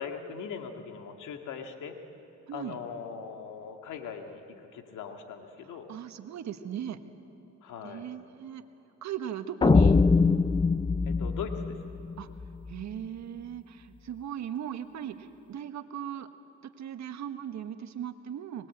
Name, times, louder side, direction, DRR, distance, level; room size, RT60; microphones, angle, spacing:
voice 1, 0.0-2.0 2.5-5.9 7.6-8.1 11.1-11.8, left 6 dB, 85° left, 4 dB, 2.1 m, -40 dB
voice 2, 2.5-2.8 5.9-7.0 7.8-8.6 9.0-10.0 12.2-12.3 12.7-16.3 16.8-18.7, right 9 dB, 65° right, 9 dB, 1.4 m, -38 dB
sound 1, 9.6-12.7, left 4 dB, 15° left, 0.5 m, -23 dB
23.0 x 20.5 x 8.6 m, 2.9 s
cardioid pair, 90°, 30 cm